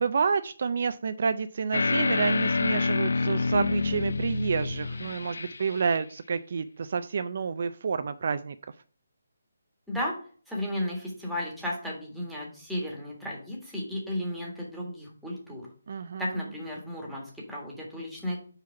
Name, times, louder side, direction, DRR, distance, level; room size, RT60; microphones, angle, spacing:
voice 1, 0.0-8.6 15.9-16.2, right 5 dB, 50° right, 11 dB, 0.4 m, -29 dB
sound 1, 1.7-6.0, left 4 dB, 80° left, 0.5 m, -27 dB
voice 2, 10.5-15.7 16.2-18.4, left 1 dB, ahead, -4 dB, 1.5 m, -34 dB
4.8 x 4.4 x 5.8 m, 0.43 s
hypercardioid pair, 170°, 0 cm